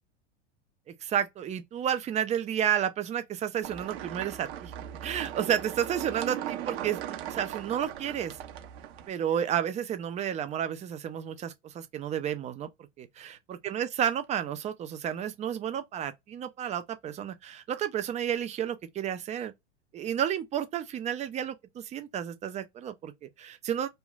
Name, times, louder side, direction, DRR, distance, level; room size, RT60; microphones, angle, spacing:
voice 1, 0.9-4.7 5.0-8.4 9.1-12.7 13.0-19.5 19.9-23.9, right 9 dB, 20° right, 0.5 m, -31 dB
sound 1, 3.6-9.1, right 11 dB, 60° right, 0.8 m, -38 dB
3.1 x 2.2 x 2.3 m
hypercardioid pair, 100°, 35 cm